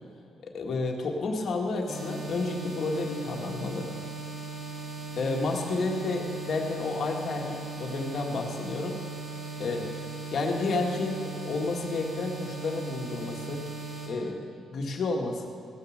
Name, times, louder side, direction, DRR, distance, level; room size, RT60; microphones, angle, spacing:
voice 1, 0.4-3.9 5.2-9.0 9.6-9.9 10.3-13.6 14.1-14.4 14.7-15.5, left 3 dB, 55° left, 2 dB, 1.7 m, -31 dB
sound 1, 1.9-14.1, right 3 dB, 70° right, 2.9 m, -38 dB
16.5 x 6.8 x 6.5 m, 2.7 s
cardioid pair, 90°, 0 cm